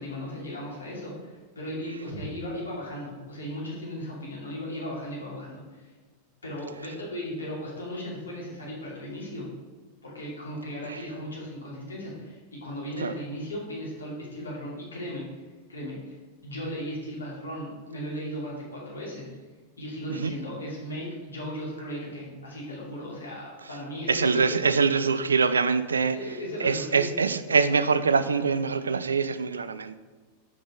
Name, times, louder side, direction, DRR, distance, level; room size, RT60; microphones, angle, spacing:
voice 1, 0.0-5.9 6.4-9.5 10.0-15.2 15.7-16.2 16.4-19.3 19.8-24.6 26.1-27.1, equal, 75° left, -4 dB, 2.5 m, -36 dB
voice 2, 24.1-26.2 26.6-30.0, right 5 dB, 75° right, 13 dB, 0.4 m, -24 dB
7.0 x 5.1 x 5.0 m, 1.3 s
figure-of-eight pair, 90°, 0 cm